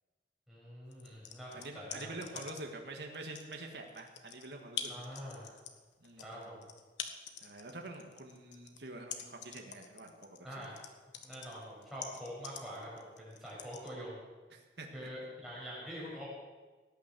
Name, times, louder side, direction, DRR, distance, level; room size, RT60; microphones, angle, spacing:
voice 1, 0.5-2.5 4.9-5.5 6.2-6.5 10.4-10.8 11.2-14.2 14.9-16.3, equal, ahead, -6 dB, 6.2 m, -45 dB
sound 1, 0.9-2.8 3.1-13.9, left 8 dB, 85° left, 1.4 m, -45 dB
voice 2, 1.5-4.9 5.4-5.6 6.0-6.5 7.1-10.8 14.5-15.1, right 2 dB, 65° right, 2 dB, 1.9 m, -47 dB
17.5 x 9.7 x 7.6 m, 1.3 s
head